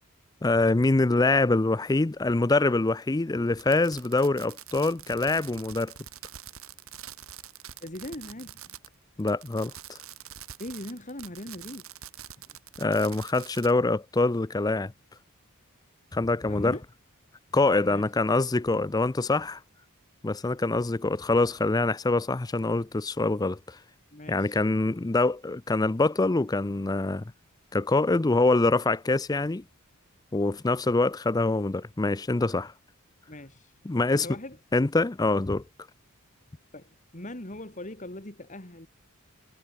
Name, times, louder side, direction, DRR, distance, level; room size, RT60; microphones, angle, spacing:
voice 1, 0.4-5.9 9.2-9.7 12.8-14.9 16.1-16.8 17.5-19.6 20.2-23.8 24.3-27.2 27.7-29.6 30.3-32.7 33.8-34.3 34.7-35.6, left 2 dB, 15° left, 0.5 m, -25 dB
Fireworks, 3.5-8.9 9.2-13.7, right 10 dB, 75° right, 3.7 m, -45 dB
voice 2, 7.8-8.6 10.6-11.9 16.5-16.8 17.8-18.0 24.1-24.6 33.3-33.7 34.1-34.6 36.7-38.9, left 1 dB, 35° left, 3.1 m, -40 dB
head